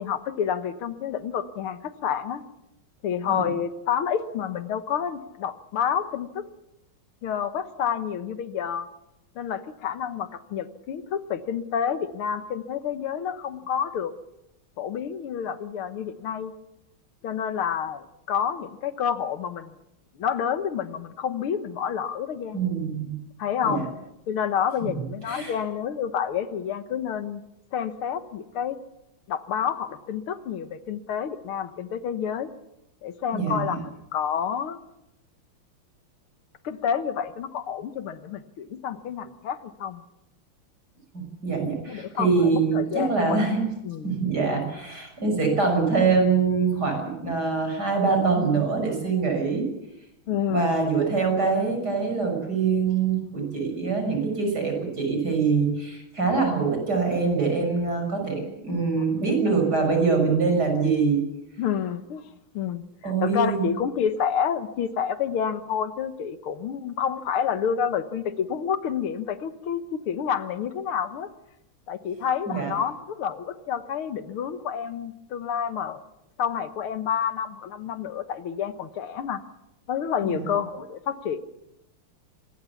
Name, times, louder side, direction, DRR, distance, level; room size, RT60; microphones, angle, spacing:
voice 1, 0.0-2.4 3.0-6.4 7.2-8.9 9.4-14.1 14.8-16.5 17.2-19.7 20.2-22.6 23.4-23.9 24.3-27.4 27.7-28.8 29.3-32.5 33.0-34.8 36.6-40.0 41.9-43.4 43.8-44.2 50.3-50.8 59.0-59.1 61.6-62.2 62.5-71.3 71.9-76.0 76.4-79.4 79.9-81.4, left 8 dB, 90° left, 11 dB, 2.1 m, -29 dB
voice 2, 22.5-23.1 23.6-23.9 24.8-25.5 33.3-33.8 41.1-43.6 44.0-49.7 50.5-61.2 63.0-63.7 72.5-72.7 80.2-80.5, right 4 dB, 50° right, 3 dB, 6.8 m, -24 dB
25.0 x 20.0 x 7.1 m, 0.86 s
omnidirectional pair, 2.3 m